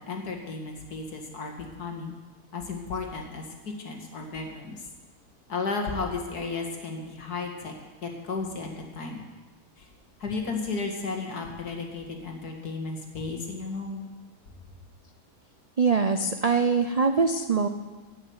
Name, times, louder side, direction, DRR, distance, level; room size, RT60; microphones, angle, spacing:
voice 1, 0.0-2.1 2.5-4.8 5.5-7.7 8.0-9.2 9.8-9.9 10.2-14.1, left 4 dB, 80° left, 2 dB, 2.5 m, -34 dB
voice 2, 15.8-17.7, right 4 dB, 90° right, 7 dB, 0.3 m, -23 dB
16.0 x 6.5 x 9.5 m, 1.3 s
omnidirectional pair, 1.6 m